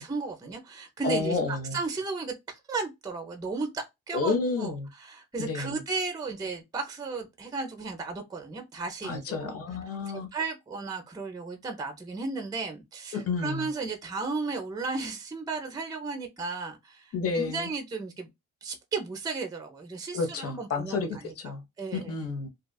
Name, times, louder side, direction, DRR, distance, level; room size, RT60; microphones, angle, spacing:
voice 1, 0.0-4.7 5.0-9.5 10.1-18.3 18.6-21.3 21.8-22.1, right 4 dB, 15° right, 0.5 m, -34 dB
voice 2, 1.0-1.8 4.1-4.9 5.4-5.8 9.0-10.3 13.1-13.7 17.1-17.7 20.1-21.6 21.9-22.5, left 4 dB, 50° left, 0.7 m, -30 dB
2.7 x 2.3 x 2.2 m
cardioid pair, 90°, 30 cm